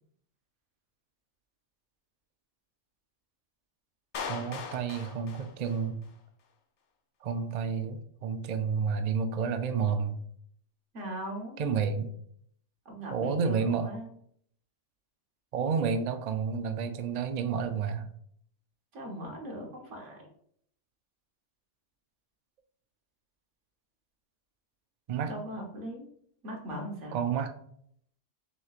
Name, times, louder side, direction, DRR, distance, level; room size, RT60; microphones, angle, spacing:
Clapping, 4.1-6.2, left 5 dB, 60° left, 0.5 m, -40 dB
voice 1, 4.3-6.0 7.2-10.2 11.6-12.1 13.1-13.9 15.5-18.1 25.1-25.3 27.1-27.5, right 6 dB, 85° right, 7 dB, 0.3 m, -30 dB
voice 2, 10.9-11.6 12.8-14.1 18.9-20.3 25.2-26.1 26.4-27.2, right 1 dB, 70° right, 0 dB, 1.4 m, -39 dB
6.2 x 3.0 x 2.4 m, 0.67 s
omnidirectional pair, 1.3 m